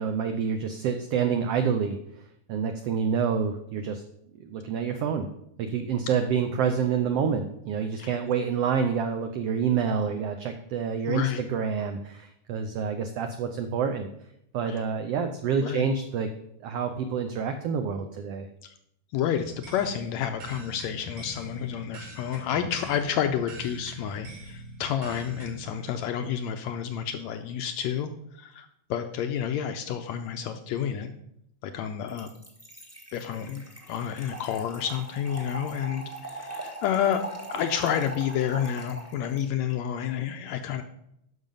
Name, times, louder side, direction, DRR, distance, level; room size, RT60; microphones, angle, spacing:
voice 1, 0.0-2.0 2.5-4.0 4.4-5.3 5.6-14.1 14.5-16.3 16.6-18.5, right 6 dB, 85° right, 7 dB, 1.3 m, -27 dB
voice 2, 11.1-11.4 14.7-14.8 15.6-15.8 18.6-18.7 19.1-31.1 31.6-32.3 33.1-37.2 37.5-40.8, left 9 dB, 80° left, 7 dB, 1.7 m, -30 dB
sound 1, 19.3-25.8, right 1 dB, 70° right, 3.4 m, -44 dB
Trickle dribble / Fill (with liquid), 32.1-39.4, right 2 dB, 15° right, 0.6 m, -41 dB
10.5 x 6.3 x 5.3 m, 0.76 s
omnidirectional pair, 3.6 m